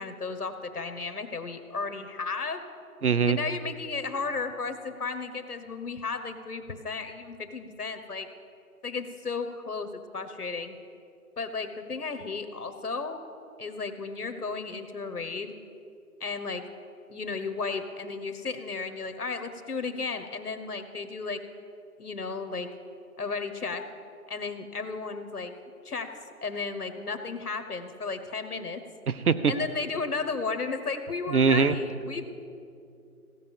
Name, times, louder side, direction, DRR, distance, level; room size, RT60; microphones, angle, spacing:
voice 1, 0.0-2.6 3.3-8.3 8.8-10.8 11.4-13.2 13.6-15.5 16.2-16.7 17.1-21.5 22.0-22.7 23.2-23.8 24.3-25.5 25.8-26.1 26.4-28.8 29.5-32.2, left 4 dB, 75° left, 8 dB, 1.2 m, -34 dB
voice 2, 3.0-3.4 29.1-29.5 31.3-31.8, right 5 dB, 70° right, 14 dB, 0.8 m, -22 dB
16.0 x 5.5 x 7.3 m, 2.6 s
figure-of-eight pair, 170°, 46 cm